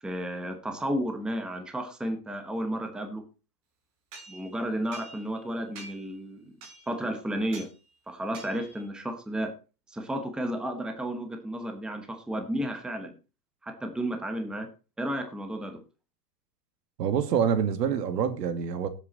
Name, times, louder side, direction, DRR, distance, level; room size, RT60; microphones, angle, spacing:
voice 1, 0.0-3.2 4.3-6.5 6.9-7.7 8.1-9.5 9.9-13.1 13.6-14.7 15.0-15.8, right 1 dB, ahead, 1.1 m, -32 dB
sound 1, 4.1-5.4 5.8-6.2 6.6-7.0 7.5-7.8 8.3-8.9, right 3 dB, 30° right, 4.6 m, -47 dB
voice 2, 17.0-18.9, right 7 dB, 80° right, 2.5 m, -26 dB
16.5 x 8.2 x 4.2 m
supercardioid pair, 160°, 48 cm